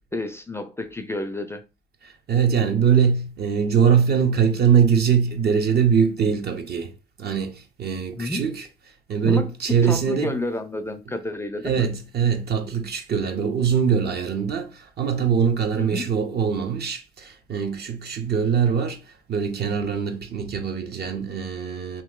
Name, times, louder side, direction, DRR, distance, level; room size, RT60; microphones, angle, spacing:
voice 1, 0.1-1.6 8.2-8.4 9.2-11.9 15.7-16.1, left 2 dB, 10° left, 0.4 m, -30 dB
voice 2, 2.3-6.9 7.2-8.7 9.1-10.4 11.6-19.0 19.3-22.0, right 7 dB, 55° right, 0.7 m, -22 dB
2.9 x 2.6 x 3.7 m
cardioid pair, 90°, 20 cm